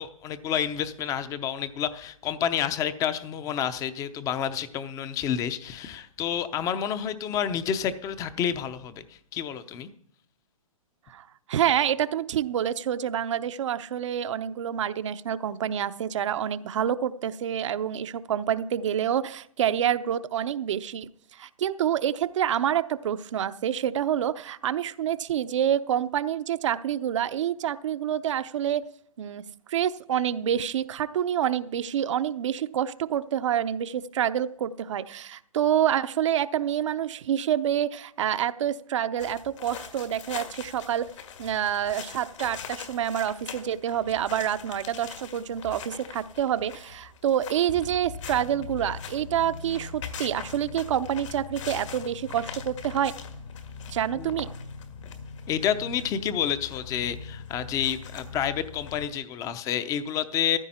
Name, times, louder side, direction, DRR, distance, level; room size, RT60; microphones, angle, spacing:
voice 1, 0.0-9.9 54.2-54.3 55.5-60.6, left 9 dB, 20° left, 13 dB, 0.7 m, -29 dB
voice 2, 11.1-21.1 21.4-28.9 29.2-29.4 29.7-41.1 41.4-53.1 53.9-54.5, right 10 dB, 55° right, 12 dB, 0.8 m, -27 dB
sound 1, 39.2-59.1, left 6 dB, 55° left, 2.0 m, -41 dB
14.5 x 12.5 x 4.3 m, 0.64 s
hypercardioid pair, 140°, 18 cm